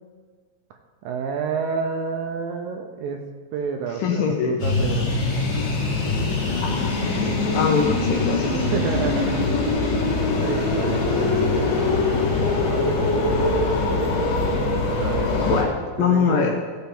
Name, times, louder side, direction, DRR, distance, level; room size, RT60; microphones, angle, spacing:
voice 1, 1.0-3.2 3.5-5.1 8.3-10.0 10.4-13.5 15.0-15.4 16.0-16.6, right 6 dB, 75° right, 4 dB, 2.2 m, -30 dB
voice 2, 4.0-4.6 6.6-7.2 7.5-8.5 15.4-15.7 16.0-16.5, left 6 dB, 70° left, 2 dB, 2.2 m, -22 dB
sound 1, 4.6-15.6, left 3 dB, 55° left, 2.6 m, -22 dB
16.0 x 5.8 x 5.4 m, 1.5 s
omnidirectional pair, 4.6 m